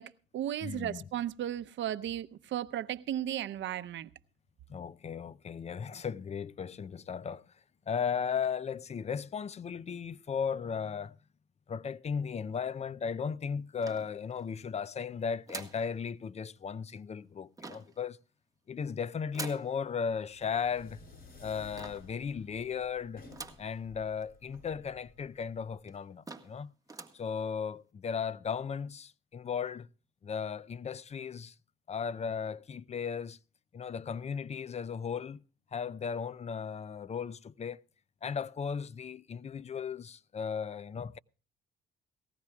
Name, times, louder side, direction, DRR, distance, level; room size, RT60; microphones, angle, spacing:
voice 1, 0.0-4.1, right 11 dB, 70° right, 0.7 m, -35 dB
voice 2, 0.6-1.0 4.7-7.4 7.9-11.1 11.7-18.2 18.7-21.0 21.4-23.2 23.6-26.7 27.1-29.9 30.2-31.5 31.9-33.4 33.7-35.4 35.7-37.8 38.2-41.2, left 6 dB, 35° left, 0.5 m, -36 dB
sound 1, 13.8-14.6 15.5-15.9 17.6-18.0 19.3-19.7 21.8-22.2 23.3-23.7 24.2-24.3 24.5-24.6 25.4-25.5 25.9-26.0 26.3-26.6 26.9-27.2, right 3 dB, 15° right, 1.5 m, -44 dB
sound 2, 20.2-26.0, left 4 dB, 50° left, 5.6 m, -54 dB
19.0 x 15.5 x 2.3 m
cardioid pair, 90°, 20 cm